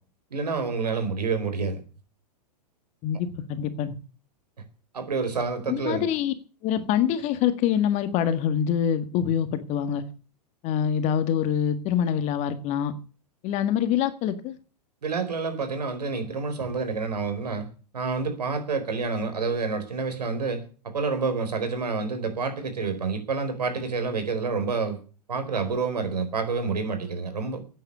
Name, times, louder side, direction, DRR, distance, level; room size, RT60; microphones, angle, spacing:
voice 1, 0.3-1.8 4.9-6.1 15.0-17.7 17.9-25.0 25.3-27.6, right 4 dB, 75° right, 7 dB, 4.5 m, -28 dB
voice 2, 3.0-3.9 5.7-6.3 6.6-10.0 10.6-12.9 13.4-14.5, left 9 dB, 35° left, 10 dB, 1.7 m, -25 dB
13.5 x 9.3 x 8.5 m, 0.37 s
figure-of-eight pair, 110°, 21 cm